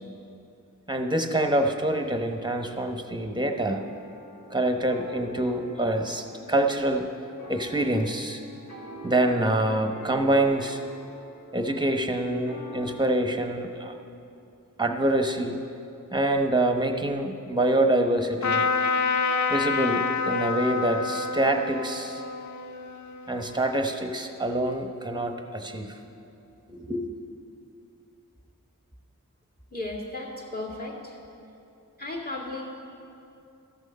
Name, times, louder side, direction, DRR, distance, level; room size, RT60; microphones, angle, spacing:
voice 1, 0.9-3.8 4.5-7.0 7.5-8.4 9.0-10.8 11.5-13.9 14.8-15.6 16.1-18.6 19.5-22.2 23.3-26.0 26.7-27.1, right 1 dB, 15° right, 4 dB, 0.9 m, -26 dB
sound 1, 3.5-13.0, right 1 dB, 80° left, 2.4 m, -44 dB
Trumpet, 18.4-23.9, left 5 dB, 60° left, 0.5 m, -28 dB
voice 2, 29.7-31.2 32.0-32.6, left 2 dB, 30° left, -2 dB, 2.1 m, -35 dB
13.5 x 6.3 x 5.3 m, 2.7 s
wide cardioid pair, 45°, 33 cm